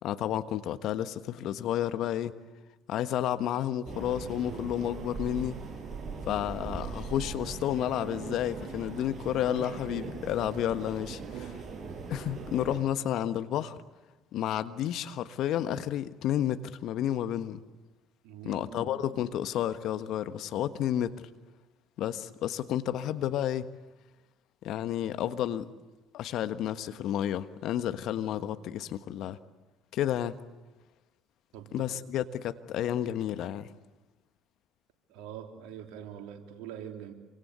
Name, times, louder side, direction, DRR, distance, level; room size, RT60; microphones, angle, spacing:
voice 1, 0.0-2.3 2.9-5.6 6.3-11.2 12.1-13.8 14.3-17.6 18.4-21.1 22.0-23.7 24.6-25.7 26.1-29.4 29.9-30.4 31.7-33.7, left 11 dB, 60° left, 11 dB, 1.3 m, -31 dB
sound 1, 3.9-12.8, right 4 dB, 40° right, 7.6 m, -40 dB
voice 2, 11.3-11.7 18.2-19.0 31.5-31.9 35.1-37.1, right 9 dB, 70° right, 4 dB, 3.3 m, -44 dB
28.0 x 25.0 x 8.2 m, 1.2 s
hypercardioid pair, 55°, 0 cm